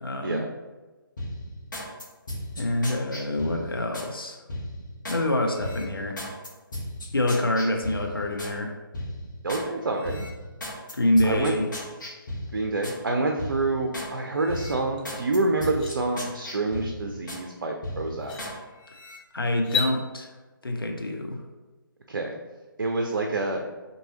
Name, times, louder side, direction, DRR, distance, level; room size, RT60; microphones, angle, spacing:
voice 1, 0.0-0.4 2.6-4.4 5.1-6.2 7.1-8.7 10.9-11.7 19.3-20.3 20.6-21.4, left 1 dB, 80° left, 2 dB, 0.6 m, -26 dB
sound 1, 1.2-4.1 4.5-5.2 5.6-8.6 8.9-9.7 10.0-13.0 13.4-14.1 14.5-17.5 17.8-18.6 18.9-19.2, left 1 dB, 60° left, 1.1 m, -36 dB
voice 2, 9.4-10.3 11.2-11.5 12.5-18.4 22.1-22.4 22.8-23.6, right 2 dB, 60° right, 3 dB, 0.5 m, -27 dB
sound 2, 15.0-15.1 15.5-15.9 17.6-17.7 18.2-18.4 19.6-19.9, left 6 dB, 20° left, 0.5 m, -30 dB
4.6 x 2.6 x 2.8 m, 1.2 s
figure-of-eight pair, 140°, 12 cm